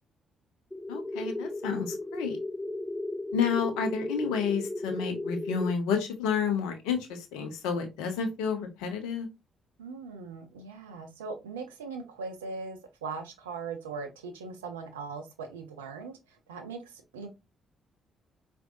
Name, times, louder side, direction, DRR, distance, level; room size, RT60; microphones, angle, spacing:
sound 1, 0.7-5.7, left 2 dB, 10° left, 0.3 m, -35 dB
voice 1, 0.9-2.4 3.3-9.3, left 6 dB, 75° left, 0.7 m, -30 dB
voice 2, 9.8-17.3, right 4 dB, 85° right, 0.5 m, -40 dB
4.5 x 2.6 x 2.5 m
figure-of-eight pair, 40°, 0 cm